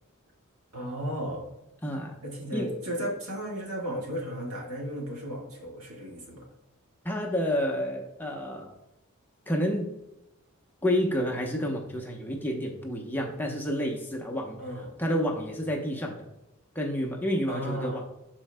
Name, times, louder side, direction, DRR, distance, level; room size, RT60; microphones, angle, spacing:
voice 1, 0.7-1.5 2.2-6.5 14.6-15.0 17.5-18.0, equal, 70° right, -1 dB, 1.8 m, -35 dB
voice 2, 1.8-2.2 2.5-2.7 7.0-8.7 9.5-9.9 10.8-14.6 15.0-16.3 16.7-18.0, equal, 10° left, 0 dB, 0.8 m, -29 dB
12.0 x 4.4 x 2.2 m, 0.93 s
head